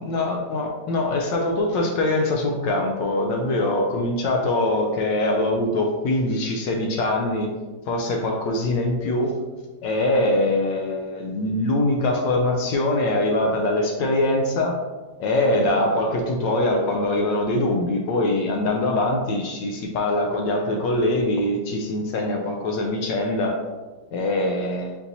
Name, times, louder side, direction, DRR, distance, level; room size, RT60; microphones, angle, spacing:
voice 1, 0.0-7.5 7.9-9.3 9.8-14.8 15.2-23.6 24.1-25.0, left 1 dB, 80° left, 1 dB, 1.3 m, -23 dB
4.5 x 3.9 x 2.7 m, 1.2 s
omnidirectional pair, 2.0 m